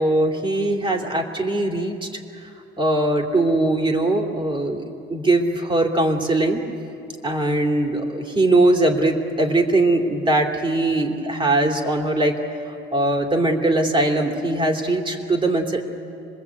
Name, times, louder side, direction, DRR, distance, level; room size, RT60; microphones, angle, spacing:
voice 1, 0.0-2.1 2.8-4.8 5.1-6.6 7.2-12.4 12.7-15.8, right 2 dB, 25° right, 2 dB, 3.1 m, -21 dB
26.0 x 21.0 x 8.5 m, 2.7 s
cardioid pair, 90°, 20 cm